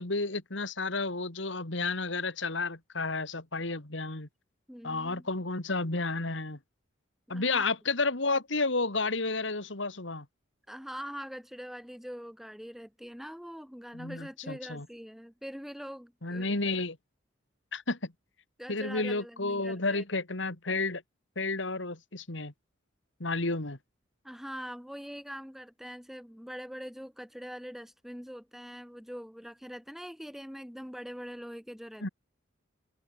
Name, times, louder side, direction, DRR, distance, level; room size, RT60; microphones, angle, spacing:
voice 1, 0.0-4.3 4.8-6.6 7.3-10.3 13.9-14.9 16.2-17.0 17.7-18.0 18.7-21.0 21.4-22.5 23.2-23.8 32.0-32.1, left 3 dB, 65° left, 2.5 m, -31 dB
voice 2, 4.7-5.3 7.3-7.7 10.7-16.6 18.6-20.0 24.2-32.1, equal, ahead, 7.3 m, -43 dB
head